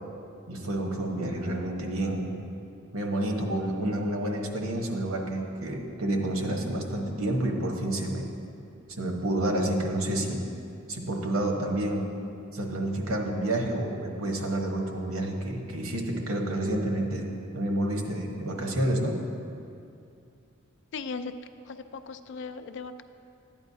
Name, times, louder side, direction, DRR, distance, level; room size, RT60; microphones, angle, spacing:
voice 1, 0.5-2.3 2.9-8.3 9.0-10.4 10.9-12.1 12.5-17.3 17.5-19.2, right 1 dB, 80° right, 1 dB, 1.1 m, -29 dB
voice 2, 20.9-21.3 21.7-23.0, left 5 dB, 55° left, 10 dB, 0.4 m, -37 dB
12.5 x 9.1 x 2.7 m, 2.5 s
head